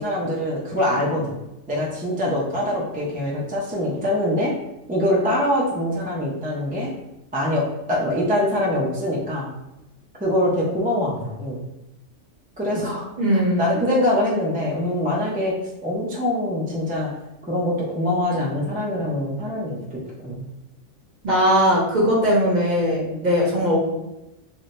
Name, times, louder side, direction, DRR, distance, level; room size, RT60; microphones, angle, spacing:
voice 1, 0.0-1.4 1.7-4.5 4.9-6.9 7.3-9.5 10.2-11.6 12.6-13.1 13.3-15.5 15.8-17.1 17.5-20.4, left 1 dB, 15° right, -5 dB, 0.3 m, -24 dB
voice 2, 13.2-13.7 21.2-23.8, equal, 40° right, -4 dB, 0.8 m, -19 dB
2.6 x 2.2 x 4.0 m, 0.94 s
omnidirectional pair, 1.3 m